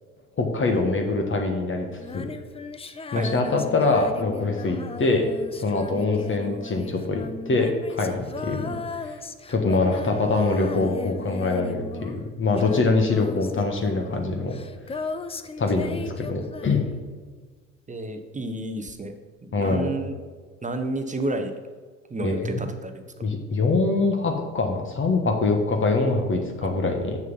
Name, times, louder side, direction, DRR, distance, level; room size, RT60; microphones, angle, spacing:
voice 1, 0.4-1.9 2.1-2.3 3.1-5.2 5.6-8.7 9.1-9.2 9.5-14.5 15.6-16.9 19.5-19.9 22.2-22.6 23.2-27.2, left 3 dB, 30° left, 3 dB, 1.4 m, -24 dB
Female singing, 2.0-17.3 18.9-19.0, left 4 dB, 15° left, 0.5 m, -37 dB
voice 2, 17.9-19.1 19.4-20.1 20.6-21.5 22.1-22.9 26.6-26.7, right 2 dB, 20° right, 7 dB, 1.0 m, -30 dB
7.3 x 6.4 x 5.4 m, 1.5 s
hypercardioid pair, 65°, 37 cm